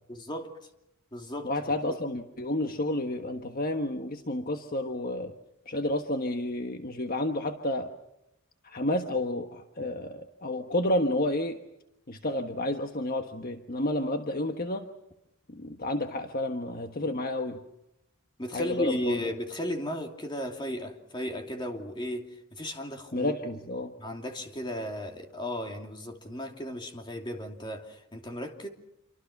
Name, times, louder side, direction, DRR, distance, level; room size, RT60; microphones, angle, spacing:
voice 1, 0.1-0.5 1.1-2.0 18.4-23.6 24.0-28.7, equal, 20° left, 3 dB, 2.8 m, -35 dB
voice 2, 1.4-5.3 5.7-7.9 8.6-11.6 12.1-14.9 15.5-17.6 18.5-19.2 23.1-23.9, left 1 dB, 45° left, 5 dB, 1.4 m, -30 dB
27.5 x 25.0 x 6.0 m, 0.88 s
head